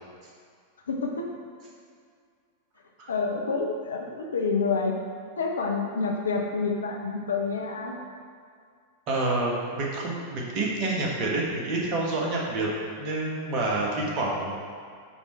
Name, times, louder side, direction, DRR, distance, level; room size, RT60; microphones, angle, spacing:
voice 1, 0.9-1.3 3.1-4.9 5.4-8.0, left 4 dB, 70° left, 1 dB, 0.8 m, -28 dB
voice 2, 9.1-12.7 13.0-14.6, right 2 dB, 35° right, -3 dB, 1.5 m, -28 dB
8.3 x 3.6 x 4.7 m, 2.1 s
figure-of-eight pair, 90°, 0 cm